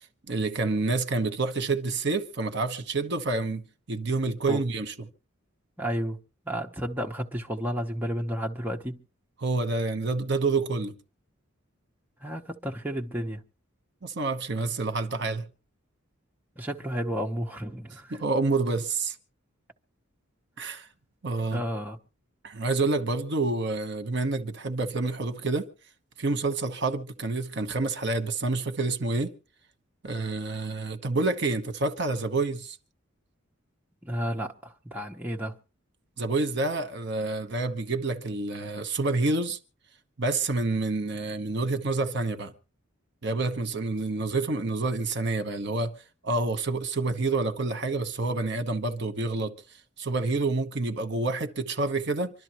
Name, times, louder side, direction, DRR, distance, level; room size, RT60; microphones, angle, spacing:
voice 1, 0.3-3.6 3.9-4.9 9.4-10.9 14.0-15.4 18.1-19.1 20.6-20.9 21.2-21.6 22.4-25.7 26.2-29.3 30.0-32.8 36.2-39.6 40.2-42.5 43.2-45.9 46.2-49.5 50.0-52.3, right 3 dB, 55° right, 1.1 m, -28 dB
voice 2, 5.8-6.2 6.4-9.0 12.2-13.4 16.6-18.2 21.5-22.0 34.0-35.6, equal, 10° right, 0.9 m, -32 dB
25.5 x 12.5 x 3.0 m
head